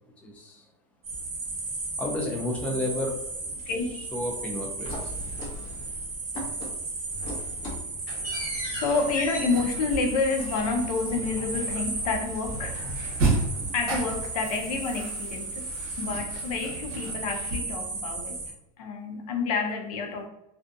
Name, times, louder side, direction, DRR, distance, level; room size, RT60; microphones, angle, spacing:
voice 1, 0.2-0.7 2.0-3.2 3.9-5.1, left 1 dB, 5° left, 0.3 m, -31 dB
sound 1, 1.0-18.5, right 3 dB, 30° right, 1.0 m, -35 dB
voice 2, 3.7-4.0 8.2-8.3 8.7-12.9 13.7-15.7 16.0-18.4 18.8-20.3, left 4 dB, 80° left, 0.6 m, -29 dB
sound 2, 4.8-6.1 6.3-6.8 7.1-12.1 12.3-13.6, equal, 40° left, 1.0 m, -38 dB
sound 3, 8.3-17.6, right 2 dB, 50° right, 0.8 m, -34 dB
2.5 x 2.2 x 2.5 m
supercardioid pair, 150°, 19 cm